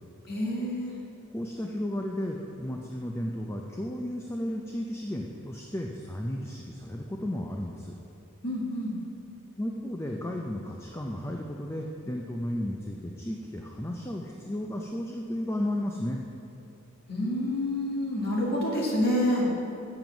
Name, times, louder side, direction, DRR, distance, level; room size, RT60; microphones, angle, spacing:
voice 1, 0.3-0.9 8.4-8.9 17.1-19.5, left 1 dB, 45° left, -5 dB, 1.9 m, -28 dB
voice 2, 1.3-7.9 9.6-16.2, left 1 dB, 10° left, 0 dB, 0.4 m, -34 dB
7.7 x 7.1 x 6.0 m, 2.7 s
head